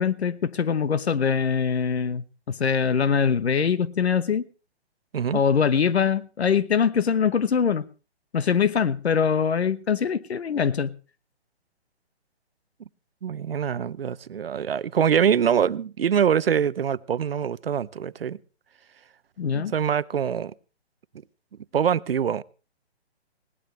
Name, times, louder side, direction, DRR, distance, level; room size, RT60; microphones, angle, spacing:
voice 1, 0.0-4.4 5.3-7.9 8.3-10.9 19.4-19.7, left 6 dB, 75° left, 1.1 m, -23 dB
voice 2, 13.2-18.4 19.5-20.5 21.7-22.4, right 8 dB, 60° right, 0.7 m, -24 dB
20.0 x 18.0 x 3.2 m
hypercardioid pair, 165°, 33 cm